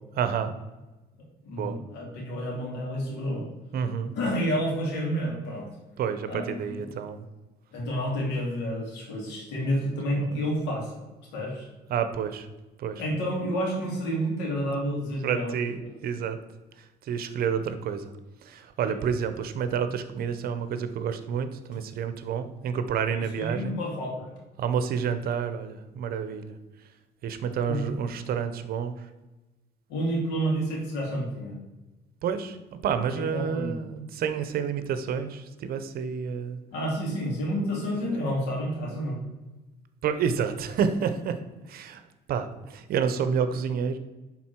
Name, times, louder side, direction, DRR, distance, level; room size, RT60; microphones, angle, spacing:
voice 1, 0.2-0.5 1.6-1.8 3.7-4.1 6.0-7.3 10.2-10.4 11.9-12.5 12.8-13.0 15.2-16.4 16.8-18.1 18.4-23.7 24.6-26.6 27.2-29.1 32.2-36.6 38.0-38.5 40.0-41.4 41.7-42.0 42.3-44.0, right 7 dB, 60° right, 10 dB, 0.8 m, -29 dB
voice 2, 1.4-3.4 4.2-5.7 6.2-6.9 7.7-10.9 11.3-11.7 13.0-15.6 18.8-19.0 23.1-24.3 27.7-27.8 29.9-31.6 33.3-33.8 36.7-39.2, equal, 90° left, -1 dB, 2.6 m, -29 dB
10.5 x 4.0 x 4.5 m, 1.1 s
cardioid pair, 110°, 17 cm